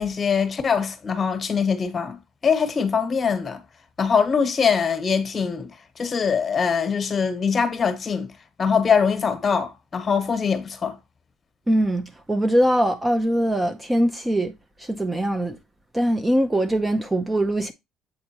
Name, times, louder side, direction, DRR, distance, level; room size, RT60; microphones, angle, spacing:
voice 1, 0.0-2.2 2.4-3.6 4.0-5.7 6.0-8.3 8.6-11.0, left 6 dB, 30° left, 1.2 m, -22 dB
voice 2, 11.7-14.5 14.8-15.6 15.9-17.7, right 1 dB, 15° right, 0.5 m, -22 dB
7.7 x 4.3 x 2.9 m
cardioid pair, 110°, 0 cm